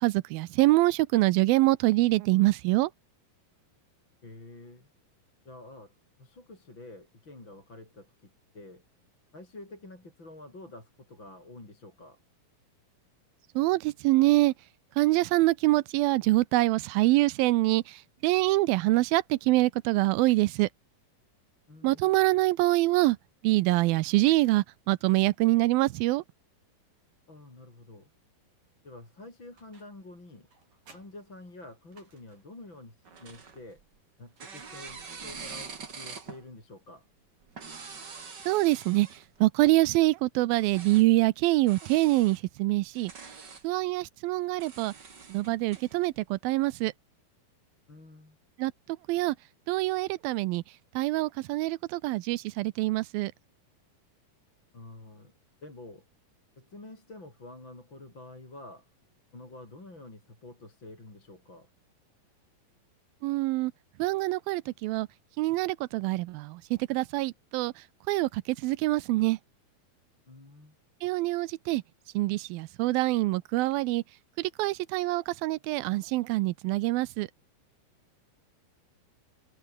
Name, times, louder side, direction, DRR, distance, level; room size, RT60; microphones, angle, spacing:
voice 1, 0.0-2.9 13.6-14.5 15.0-20.7 21.8-23.2 23.4-26.2 38.5-39.1 39.4-43.1 43.6-44.9 45.3-46.9 48.6-48.7 49.1-49.4 49.7-50.6 51.0-53.3 63.2-63.7 64.0-65.1 65.4-67.7 68.1-69.4 71.0-71.8 72.1-74.0 74.4-77.3, right 19 dB, 80° right, 2.4 m, -25 dB
voice 2, 4.2-4.9 5.4-8.8 9.3-12.2 21.7-22.1 27.3-28.1 28.8-30.5 30.9-33.8 34.2-37.1 47.9-48.4 54.7-55.3 55.6-56.1 56.6-58.9 59.3-61.7 70.3-70.8, left 2 dB, 30° left, 7.8 m, -48 dB
sound 1, 29.6-30.1 30.5-32.6 34.3-35.2, right 4 dB, 60° right, 9.3 m, -61 dB
sound 2, 33.1-34.0 34.4-36.4 37.4-39.4 40.5-41.1 41.7-42.4 42.9-43.7 44.6-46.1, right 5 dB, 30° right, 2.6 m, -45 dB
omnidirectional pair, 4.3 m